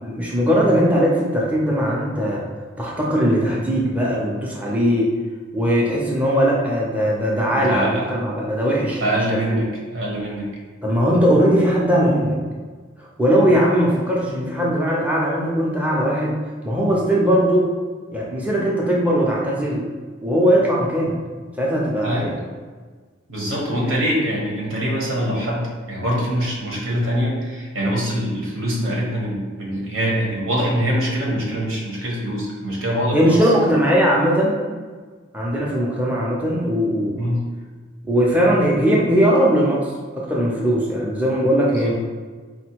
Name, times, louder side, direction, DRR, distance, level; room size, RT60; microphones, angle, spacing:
voice 1, 0.0-2.4 2.8-5.1 5.5-9.6 10.8-12.4 13.0-16.3 16.6-17.7 18.1-19.9 20.2-21.1 21.6-22.5 23.8-23.9 33.1-34.6 35.3-37.1 38.0-42.0, equal, 5° right, -5 dB, 0.5 m, -19 dB
voice 2, 7.5-8.0 9.0-10.5 22.0-22.3 23.3-33.4 37.2-37.4 41.8-41.9, equal, 85° right, -3 dB, 1.2 m, -24 dB
4.3 x 2.2 x 4.4 m, 1.5 s
head